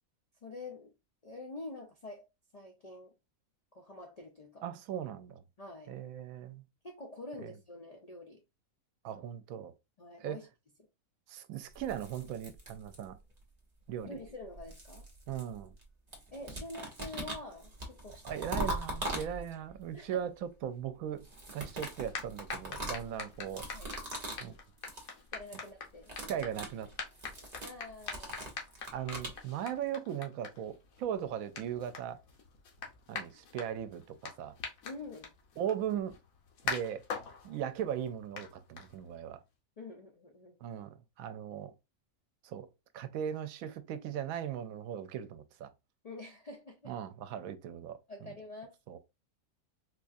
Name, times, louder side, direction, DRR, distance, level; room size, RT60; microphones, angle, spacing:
voice 1, 0.4-0.9 1.2-2.3 2.5-3.1 3.7-4.6 5.6-5.9 6.8-8.4 10.0-10.5 14.0-15.1 16.3-18.3 19.9-20.3 23.7-23.9 25.3-26.1 27.6-28.5 34.8-35.4 39.8-40.6 46.0-47.0 48.1-48.8, left 2 dB, 60° left, 0.4 m, -46 dB
voice 2, 4.6-5.4 5.9-6.6 7.4-7.5 9.0-9.7 10.2-10.4 11.3-13.2 13.9-14.2 15.3-15.7 18.2-21.2 21.5-23.7 24.4-24.5 26.3-26.9 28.9-32.2 33.1-34.6 35.6-36.1 36.6-37.0 37.4-39.4 40.6-41.7 42.4-42.7 42.9-45.7 46.9-48.3 48.9-49.0, right 9 dB, 85° right, 1.0 m, -38 dB
sound 1, 11.7-13.3 14.2-15.8 16.1-19.7 21.2-24.5 24.8-25.1 25.4-25.7 26.0-29.4, right 1 dB, 35° right, 1.0 m, -41 dB
sound 2, 21.6-39.3, left 5 dB, 85° left, 1.3 m, -45 dB
4.3 x 2.3 x 2.5 m
omnidirectional pair, 1.4 m